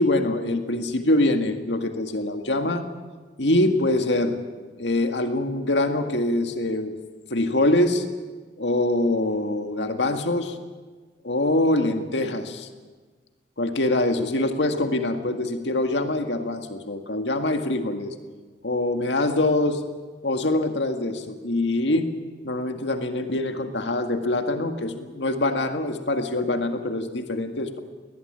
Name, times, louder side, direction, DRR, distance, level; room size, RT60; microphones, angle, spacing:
voice 1, 0.0-2.9 3.4-4.4 4.8-6.9 7.3-8.0 8.6-10.6 11.2-12.7 13.6-18.1 18.6-19.8 20.2-22.1 22.4-27.8, left 1 dB, 80° left, 6 dB, 1.9 m, -24 dB
21.5 x 18.5 x 8.9 m, 1.4 s
head